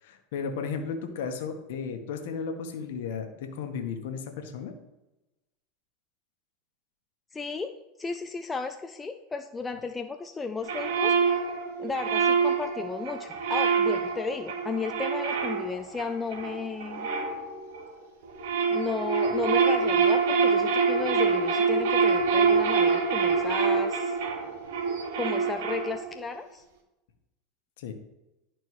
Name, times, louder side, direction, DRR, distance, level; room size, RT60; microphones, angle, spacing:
voice 1, 0.0-4.7 27.8-27.9, left 6 dB, 75° left, 6 dB, 1.1 m, -34 dB
voice 2, 7.3-7.7 8.0-11.1 11.8-17.1 18.7-24.2 25.1-26.6, left 4 dB, 15° left, 6 dB, 0.4 m, -34 dB
sound 1, 10.6-17.9 18.3-26.2, right 5 dB, 75° right, 1.1 m, -26 dB
11.0 x 4.5 x 3.1 m, 0.97 s
supercardioid pair, 110°, 0 cm